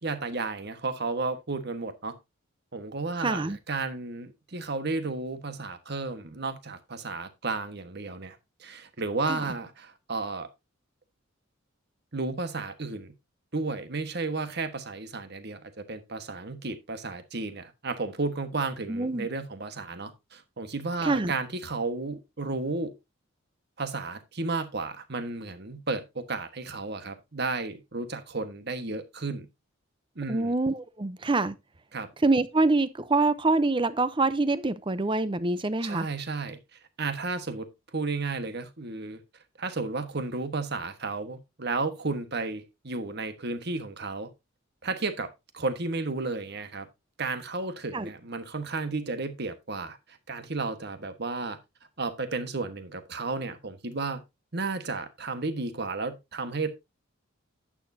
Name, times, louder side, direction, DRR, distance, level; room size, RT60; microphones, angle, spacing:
voice 1, 0.0-2.1 2.7-10.5 12.1-13.1 13.5-22.9 23.8-29.5 30.1-30.5 31.9-32.1 35.8-39.2 39.6-44.3 44.8-46.9 47.2-51.6 52.0-54.2 54.5-56.7, right 3 dB, 55° right, 1.4 m, -33 dB
voice 2, 3.2-3.6 9.3-9.4 18.9-19.3 21.0-21.3 30.3-31.5 32.2-36.1 47.9-48.1, right 2 dB, 25° right, 0.6 m, -25 dB
11.5 x 8.6 x 2.7 m
head